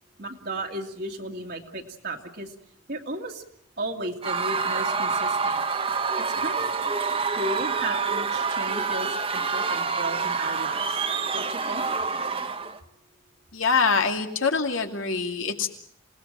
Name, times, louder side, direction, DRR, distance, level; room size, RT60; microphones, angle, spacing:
voice 1, 0.2-2.5 2.9-3.4 3.8-5.6 6.2-6.7 7.4-11.0 11.3-11.9, right 1 dB, 50° right, 0 dB, 2.1 m, -35 dB
Screaming / Cheering / Crowd, 4.2-12.8, right 5 dB, 25° right, 1.1 m, -27 dB
voice 2, 13.5-15.7, left 5 dB, 75° left, 4 dB, 2.6 m, -24 dB
28.0 x 18.5 x 7.6 m, 0.69 s
head